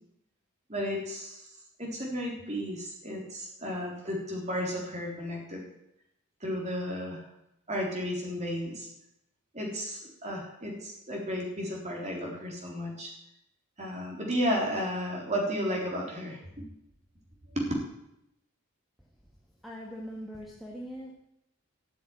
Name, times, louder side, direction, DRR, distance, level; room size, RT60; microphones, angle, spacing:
voice 1, 0.7-1.4 1.8-5.6 6.4-7.2 7.7-8.9 9.5-13.1 13.8-16.7 17.5-17.7, equal, 30° right, 0 dB, 3.7 m, -33 dB
voice 2, 19.6-21.1, equal, ahead, -1 dB, 1.4 m, -41 dB
13.5 x 7.4 x 9.2 m, 0.82 s
head